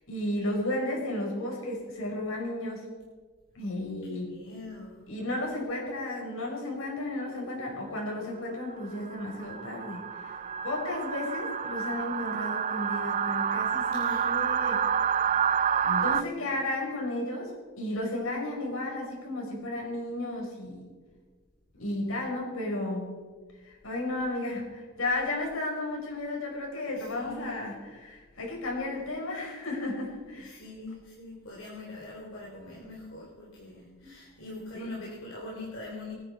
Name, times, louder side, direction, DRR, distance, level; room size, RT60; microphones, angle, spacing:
voice 1, 0.1-2.9 3.6-4.3 5.1-14.8 15.8-20.9 21.8-23.2 23.6-30.6 34.7-35.0, left 1 dB, 85° left, -1 dB, 5.2 m, -33 dB
voice 2, 4.0-5.1 13.9-14.3 26.8-27.5 30.4-36.1, left 2 dB, 70° left, -4 dB, 3.3 m, -43 dB
sound 1, 7.6-7.8 8.4-16.2, right 7 dB, 35° right, 0.4 m, -29 dB
25.0 x 9.8 x 4.6 m, 1.4 s
head